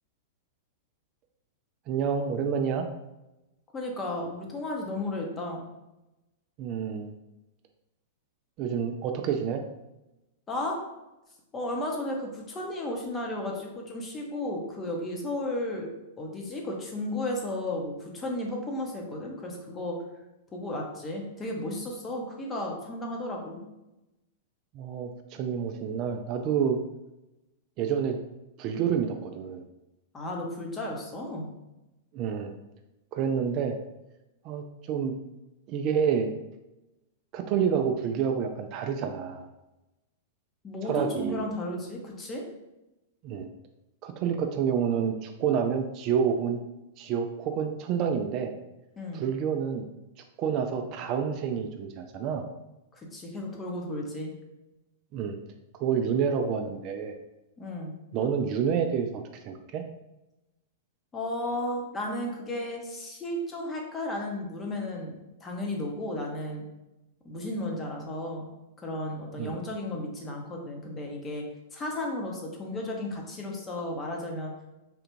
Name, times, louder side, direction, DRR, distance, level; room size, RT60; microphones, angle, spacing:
voice 1, 1.9-2.9 6.6-7.1 8.6-9.6 24.7-26.8 27.8-28.2 28.6-29.6 32.1-32.5 33.1-33.8 34.4-35.2 35.7-36.3 37.3-39.5 40.8-41.4 43.2-43.5 44.0-46.6 47.0-48.5 49.1-49.9 50.4-52.4 55.1-55.4 55.8-57.2 58.1-59.8 69.4-69.6, right 7 dB, 40° right, 5 dB, 0.3 m, -28 dB
voice 2, 3.7-5.6 10.5-10.8 11.5-15.9 16.2-20.0 20.5-23.6 30.1-31.5 40.6-42.4 49.0-49.2 52.9-54.3 57.6-58.0 61.1-66.6 67.2-68.5 68.8-71.4 71.7-74.5, left 1 dB, 20° left, 0 dB, 0.8 m, -34 dB
3.3 x 2.4 x 3.0 m, 0.95 s
hypercardioid pair, 105°, 0 cm